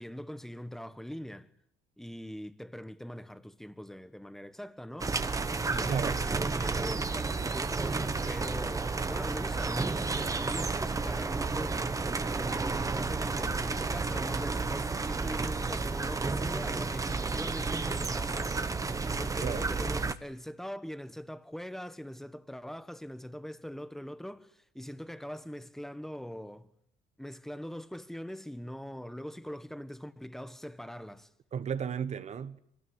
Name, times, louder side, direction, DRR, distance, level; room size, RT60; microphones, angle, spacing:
voice 1, 0.0-1.5 2.0-5.1 5.7-18.6 19.2-26.7 27.2-31.3, equal, ahead, 1.4 m, -42 dB
sound 1, 5.0-20.1, right 4 dB, 20° right, 1.3 m, -31 dB
voice 2, 31.5-32.6, right 7 dB, 40° right, 1.2 m, -33 dB
25.5 x 19.5 x 9.7 m
cardioid pair, 110°, 17 cm